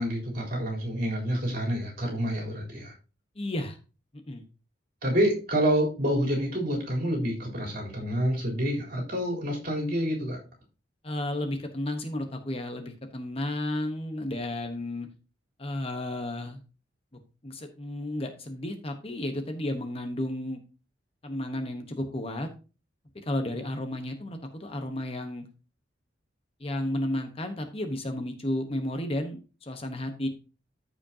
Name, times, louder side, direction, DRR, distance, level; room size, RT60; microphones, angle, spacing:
voice 1, 0.0-2.9 5.0-10.4, equal, 50° right, -1 dB, 3.7 m, -28 dB
voice 2, 3.4-3.8 4.3-4.4 11.0-15.1 15.6-16.6 17.4-20.6 21.2-22.5 23.1-25.4 26.6-30.3, left 1 dB, 30° left, 6 dB, 1.1 m, -32 dB
14.0 x 5.1 x 2.8 m, 0.33 s
head